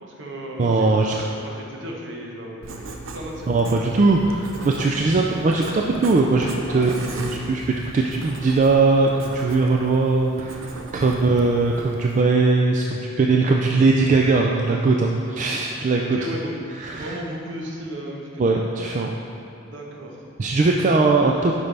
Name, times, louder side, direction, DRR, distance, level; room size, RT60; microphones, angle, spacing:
voice 1, 0.0-3.8 6.7-7.4 11.0-11.3 16.0-16.6 16.9-18.5 19.6-20.2, equal, 60° right, -1 dB, 1.0 m, -35 dB
voice 2, 0.6-1.1 3.5-6.9 7.2-7.6 7.9-10.6 10.9-16.2 16.8-17.1 18.4-19.1 20.4-21.5, right 3 dB, 40° right, 0 dB, 0.3 m, -20 dB
Writing, 2.6-12.2, right 2 dB, 80° right, 0.7 m, -38 dB
8.8 x 5.4 x 3.4 m, 2.7 s
head